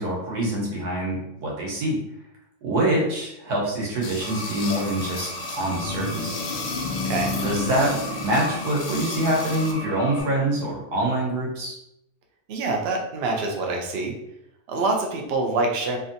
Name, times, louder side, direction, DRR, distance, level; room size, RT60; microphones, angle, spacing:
voice 1, 0.0-2.0 2.6-6.4 7.4-7.9 8.2-11.7, right 1 dB, 80° right, -3 dB, 1.5 m, -25 dB
sound 1, 4.0-9.7, left 4 dB, 60° left, 0.7 m, -36 dB
sound 2, 4.2-10.2, left 1 dB, 40° right, 1.1 m, -36 dB
sound 3, 5.2-10.8, left 2 dB, 20° right, 1.1 m, -33 dB
voice 2, 12.5-14.1 14.7-16.0, right 3 dB, 65° right, 1 dB, 0.6 m, -25 dB
3.2 x 2.5 x 2.6 m, 0.82 s
omnidirectional pair, 1.6 m